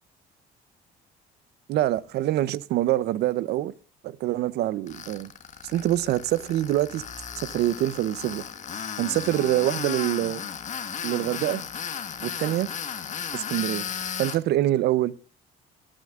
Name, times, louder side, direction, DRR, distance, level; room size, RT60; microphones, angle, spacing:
voice 1, 1.7-3.7 4.0-5.3 5.7-7.0 7.5-8.4 9.0-10.4 11.0-11.6 12.2-12.7 13.3-13.8 14.2-15.1, right 14 dB, 75° right, 0.8 m, -25 dB
Tools, 4.9-14.4, left 7 dB, 45° left, 1.7 m, -35 dB
22.0 x 9.1 x 3.7 m
cardioid pair, 110°, 17 cm